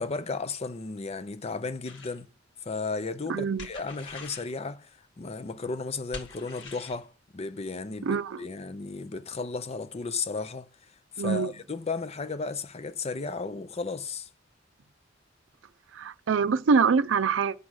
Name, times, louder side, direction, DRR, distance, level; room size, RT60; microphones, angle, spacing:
voice 1, 0.0-2.3 2.6-14.3, left 4 dB, 35° left, 0.5 m, -34 dB
sound 1, 1.9-2.2 3.6-4.5 6.1-7.0, left 3 dB, 75° left, 1.8 m, -44 dB
voice 2, 3.3-3.7 8.0-8.4 11.2-11.5 15.9-17.6, right 5 dB, 85° right, 0.5 m, -24 dB
8.2 x 6.1 x 6.2 m
head